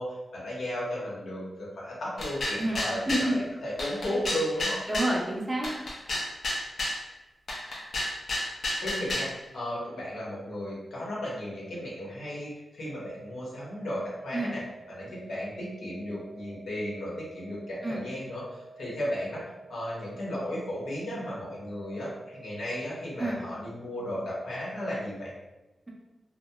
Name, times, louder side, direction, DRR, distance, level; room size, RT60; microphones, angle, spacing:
voice 1, 0.0-4.8 8.8-14.6 14.9-19.4 19.7-25.3, left 1 dB, 85° left, -6 dB, 0.9 m, -35 dB
sound 1, 2.2-3.3 3.8-5.2 5.6-7.0 7.5-9.3, left 1 dB, 65° left, 0.5 m, -31 dB
voice 2, 3.0-3.4 4.6-5.7 14.3-14.5 17.8-18.0 23.2-23.4, right 1 dB, 25° right, -3 dB, 0.6 m, -29 dB
sound 2, 13.0-23.0, right 3 dB, 65° right, 0.6 m, -51 dB
2.8 x 2.1 x 2.2 m, 1.1 s
wide cardioid pair, 105°, 0 cm